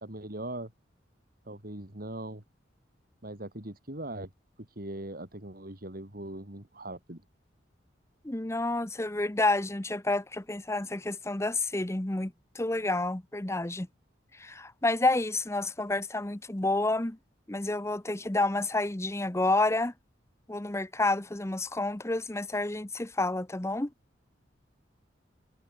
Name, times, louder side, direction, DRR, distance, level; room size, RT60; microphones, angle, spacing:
voice 1, 0.0-0.7 1.5-2.4 3.2-4.3 4.8-7.2, right 1 dB, 50° right, 3.6 m, -40 dB
voice 2, 8.2-13.9 14.3-17.2 17.5-19.9 20.5-23.9, left 2 dB, 15° left, 0.9 m, -29 dB
head